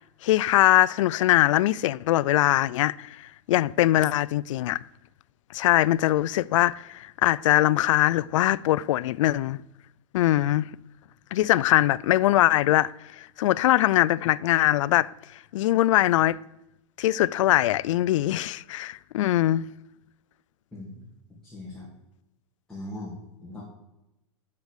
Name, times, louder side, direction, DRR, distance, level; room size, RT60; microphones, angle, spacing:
voice 1, 0.2-4.8 5.5-9.6 10.1-10.7 11.3-15.1 15.5-16.4 17.0-19.7, left 14 dB, 85° left, 0.4 m, -22 dB
voice 2, 20.7-21.1 21.4-21.9 22.7-23.6, left 1 dB, 5° left, 2.4 m, -39 dB
7.9 x 6.9 x 6.5 m
supercardioid pair, 140°, 16 cm